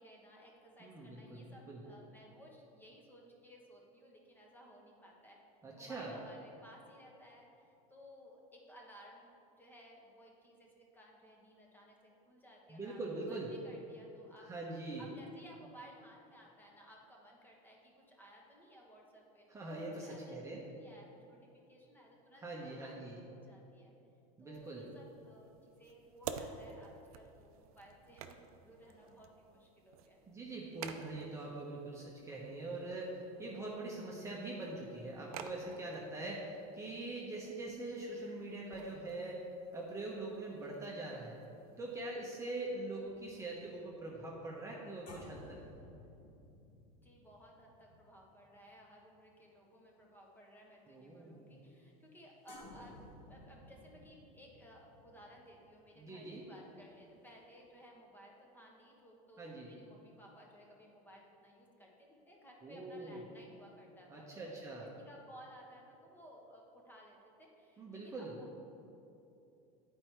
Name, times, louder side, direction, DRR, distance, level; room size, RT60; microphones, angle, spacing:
voice 1, 0.0-5.4 5.7-13.0 13.3-14.5 15.0-22.9 23.3-23.9 24.4-30.2 47.0-64.5 64.8-68.5, equal, 10° left, -2 dB, 1.2 m, -58 dB
voice 2, 0.8-1.8 5.6-6.1 12.7-13.5 14.5-15.0 19.5-20.6 22.4-23.2 24.4-24.8 30.3-39.4 39.7-41.4 41.8-45.6 50.9-51.6 56.0-56.4 59.4-59.7 62.6-63.2 64.1-64.9 67.8-68.3, right 2 dB, 15° right, -4 dB, 1.0 m, -43 dB
sound 1, 24.5-42.2, right 7 dB, 85° right, 0.5 m, -52 dB
sound 2, 42.9-49.5 49.9-50.1 52.5-57.1 57.4-57.6, left 1 dB, 50° left, 1.5 m, -57 dB
8.6 x 4.5 x 4.6 m, 2.8 s
supercardioid pair, 115°, 18 cm